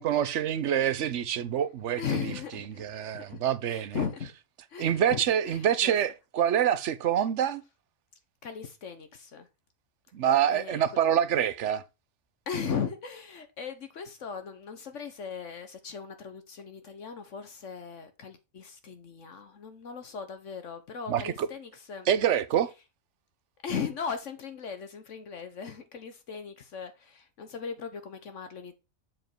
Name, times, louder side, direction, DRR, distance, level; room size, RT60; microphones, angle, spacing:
voice 1, 0.0-2.3 2.8-4.0 4.8-7.6 10.1-11.8 21.1-21.5 22.1-22.7, right 9 dB, 65° right, 1.0 m, -26 dB
voice 2, 2.0-2.8 3.1-4.3 4.7-6.0 8.4-9.5 10.5-10.9 12.5-22.1 23.6-28.7, left 6 dB, 65° left, 1.3 m, -37 dB
7.5 x 5.1 x 4.4 m
omnidirectional pair, 1.4 m